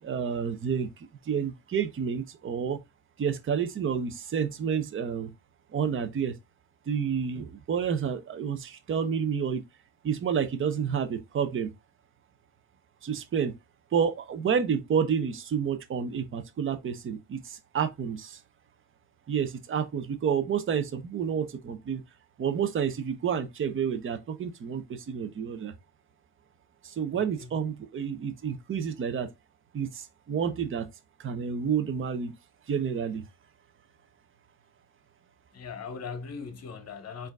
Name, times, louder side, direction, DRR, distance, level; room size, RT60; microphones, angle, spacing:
voice 1, 0.0-2.8 3.2-5.3 5.7-6.3 6.9-9.6 10.0-11.7 13.0-13.5 13.9-18.4 19.3-22.0 22.4-25.7 26.8-29.3 29.7-30.9 31.2-32.3 32.7-33.2, right 7 dB, 30° right, 0.7 m, -29 dB
voice 2, 27.1-27.5 35.5-37.3, left 5 dB, 40° left, 0.9 m, -39 dB
4.3 x 2.7 x 3.5 m
cardioid pair, 100°, 41 cm